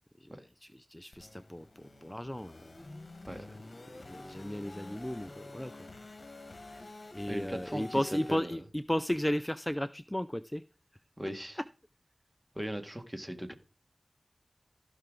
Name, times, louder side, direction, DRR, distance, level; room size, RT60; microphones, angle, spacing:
voice 1, 0.2-2.8 3.9-5.9 7.1-10.6 11.6-11.7, left 1 dB, 15° left, 12 dB, 0.4 m, -35 dB
sound 1, 1.1-8.4, left 2 dB, 60° left, 1.2 m, -49 dB
voice 2, 3.3-3.6 6.7-6.8 7.3-8.0 8.3-8.6 11.2-11.6 12.6-13.5, equal, 15° right, 6 dB, 1.8 m, -39 dB
15.5 x 5.8 x 3.8 m, 0.32 s
wide cardioid pair, 60°, 0 cm